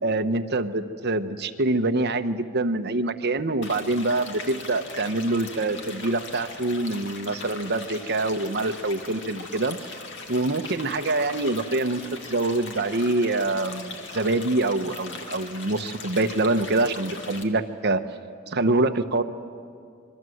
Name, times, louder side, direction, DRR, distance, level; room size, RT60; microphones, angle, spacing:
voice 1, 0.0-9.9 10.3-12.0 12.3-18.0 18.5-19.2, right 2 dB, 50° right, 8 dB, 1.1 m, -25 dB
sound 1, 3.6-17.4, left 3 dB, 60° left, 2.3 m, -40 dB
26.5 x 23.0 x 7.9 m, 2.3 s
head